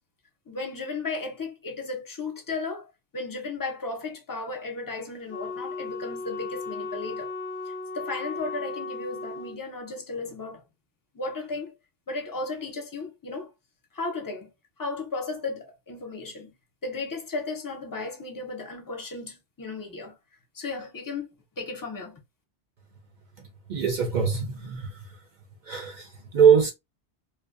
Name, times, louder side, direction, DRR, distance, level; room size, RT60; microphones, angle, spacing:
voice 1, 0.5-2.9 3.1-7.3 7.7-10.6 11.1-11.7 12.1-13.5 13.9-14.5 14.8-16.5 16.8-20.1 20.5-21.3 21.6-22.2, left 3 dB, 25° left, 0.4 m, -35 dB
Wind instrument woodwind instrument, 5.3-9.6, left 3 dB, 75° left, 0.9 m, -36 dB
voice 2, 23.4-25.0 25.7-26.7, right 7 dB, 60° right, 0.5 m, -23 dB
2.5 x 2.1 x 2.4 m
omnidirectional pair, 1.2 m